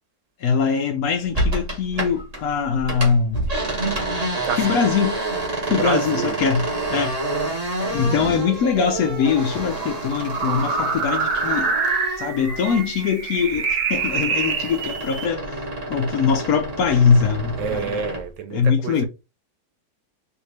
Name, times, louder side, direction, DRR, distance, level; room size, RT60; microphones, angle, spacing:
voice 1, 0.4-3.5 4.6-5.2 5.7-6.6 6.9-7.2 7.9-11.7 12.2-15.6 15.9-18.0 18.5-19.0, left 6 dB, 70° left, 0.9 m, -22 dB
sound 1, 1.3-2.4 2.7-13.1 13.4-18.3, right 2 dB, 30° right, 0.8 m, -28 dB
voice 2, 4.3-4.9 5.6-6.4 8.1-8.3 17.6-19.0, right 7 dB, 75° right, 1.3 m, -28 dB
sound 2, 7.9-15.3, right 4 dB, 60° right, 0.9 m, -27 dB
3.5 x 2.6 x 3.1 m
omnidirectional pair, 2.0 m